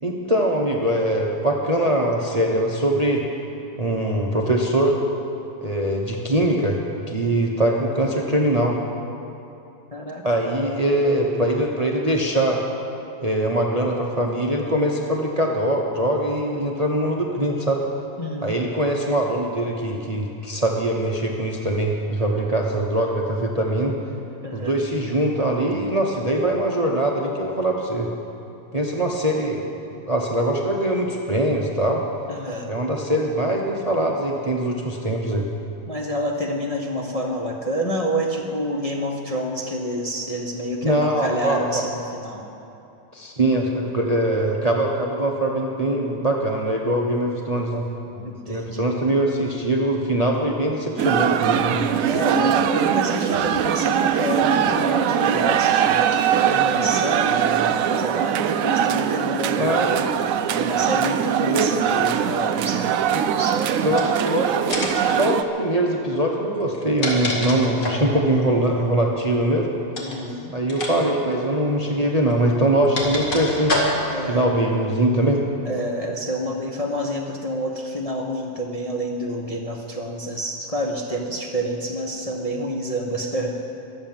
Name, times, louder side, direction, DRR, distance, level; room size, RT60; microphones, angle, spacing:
voice 1, 0.0-3.2 3.8-5.0 5.6-6.8 7.1-8.8 10.2-12.6 13.2-17.8 18.4-24.0 24.5-28.1 28.7-29.7 30.1-32.0 32.7-35.5 40.8-41.8 43.1-47.8 48.5-51.8 59.6-60.1 61.5-61.7 63.1-63.2 63.8-69.7 70.5-73.8 74.3-75.4, right 1 dB, 25° right, 0 dB, 1.0 m, -22 dB
voice 2, 9.9-10.8 18.2-18.5 24.4-24.7 32.3-32.7 35.9-42.4 48.1-48.9 52.1-60.0 60.5-63.0 63.3-63.7 70.0-70.5 70.8-71.1 74.1-74.4 75.6-83.5, equal, 25° left, -1 dB, 1.0 m, -28 dB
sound 1, 51.0-65.4, right 9 dB, 75° right, 0.7 m, -21 dB
sound 2, 63.9-64.3 64.7-65.1 66.6-68.1 69.9-70.2 70.7-70.9 71.2-71.3 72.3-74.2, left 1 dB, 45° left, 2.5 m, -26 dB
23.0 x 8.1 x 7.5 m, 2.8 s
omnidirectional pair, 2.0 m